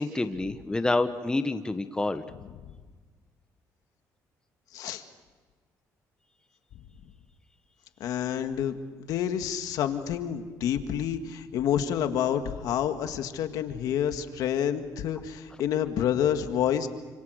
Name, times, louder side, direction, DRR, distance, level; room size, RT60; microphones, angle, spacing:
voice 1, 0.0-2.2, left 2 dB, 15° left, 9 dB, 1.2 m, -28 dB
voice 2, 4.7-5.0 8.0-16.9, left 9 dB, 80° left, 7 dB, 1.8 m, -28 dB
29.0 x 26.5 x 6.5 m, 1.5 s
cardioid pair, 115°, 6 cm